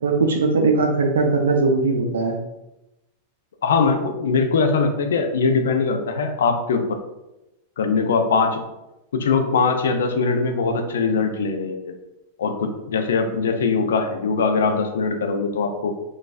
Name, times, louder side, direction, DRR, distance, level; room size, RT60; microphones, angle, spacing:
voice 1, 0.0-2.4, right 3 dB, 75° right, 3 dB, 0.4 m, -19 dB
voice 2, 3.6-7.0 7.8-8.7 9.2-11.9 12.4-15.9, left 4 dB, 75° left, 5 dB, 0.4 m, -21 dB
4.0 x 2.5 x 2.4 m, 0.95 s
hypercardioid pair, 100°, 0 cm